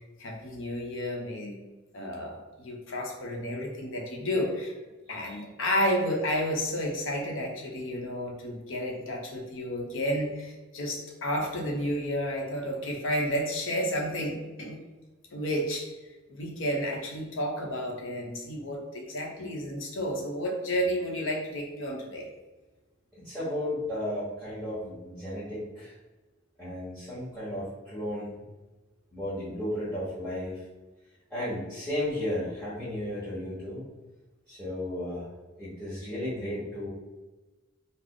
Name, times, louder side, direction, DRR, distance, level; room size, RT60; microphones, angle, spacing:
voice 1, 0.2-1.6 1.9-4.7 5.1-14.8 15.3-15.9 16.3-22.3, equal, 70° left, 0 dB, 0.7 m, -31 dB
voice 2, 5.1-5.4 23.2-25.9 26.6-28.4 29.1-30.6 31.3-33.8 34.5-35.3 35.6-36.9, left 1 dB, ahead, -10 dB, 1.0 m, -34 dB
3.4 x 2.0 x 3.8 m, 1.2 s
head